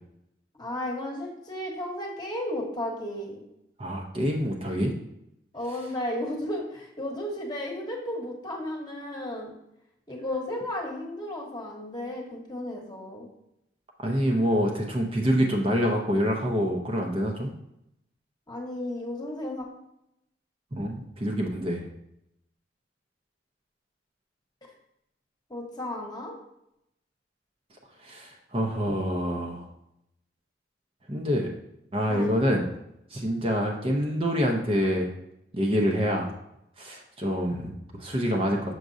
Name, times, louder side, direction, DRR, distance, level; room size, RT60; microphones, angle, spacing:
voice 1, 0.6-3.4 5.5-9.5 10.1-13.3 18.5-19.7 25.5-26.3 32.1-32.3, left 1 dB, 25° left, -1 dB, 1.2 m, -34 dB
voice 2, 3.8-4.9 14.0-17.5 20.7-21.9 28.0-29.7 31.1-31.5 31.9-32.6 33.1-35.1 35.5-36.3 36.8-38.7, equal, 30° right, 0 dB, 0.7 m, -26 dB
6.2 x 5.9 x 2.6 m, 0.81 s
head